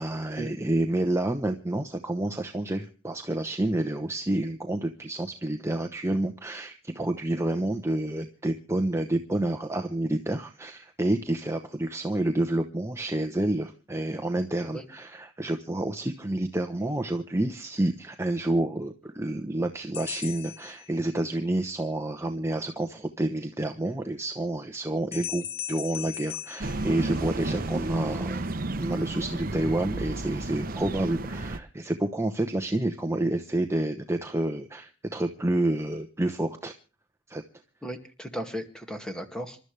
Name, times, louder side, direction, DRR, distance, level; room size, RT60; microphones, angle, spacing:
voice 1, 0.0-28.5 28.8-36.7 37.3-37.4, right 1 dB, 15° right, 5 dB, 0.9 m, -29 dB
sound 1, 19.9-21.5 25.1-27.6, left 10 dB, 85° left, 1.3 m, -39 dB
sound 2, 26.6-31.6, right 2 dB, 45° right, 0.9 m, -32 dB
voice 2, 37.8-39.6, equal, 5° left, 6 dB, 2.2 m, -36 dB
27.5 x 12.5 x 3.4 m, 0.36 s
head